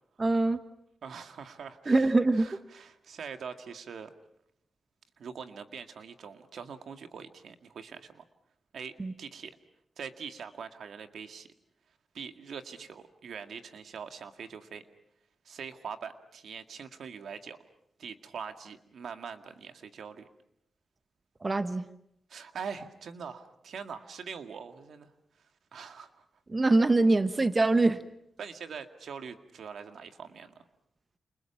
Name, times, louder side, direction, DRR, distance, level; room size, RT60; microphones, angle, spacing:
voice 1, 0.2-0.6 1.9-2.5 9.0-9.1 21.4-21.9 26.5-28.0, right 2 dB, 30° right, 10 dB, 1.2 m, -24 dB
voice 2, 1.0-2.1 2.4-4.1 5.2-8.2 8.7-9.6 10.0-11.5 12.1-14.8 15.5-17.6 18.0-20.3 22.3-25.1 25.7-26.2 28.4-30.6, right 6 dB, 80° right, 7 dB, 2.0 m, -43 dB
29.5 x 28.5 x 5.9 m, 0.75 s
wide cardioid pair, 110°, 0 cm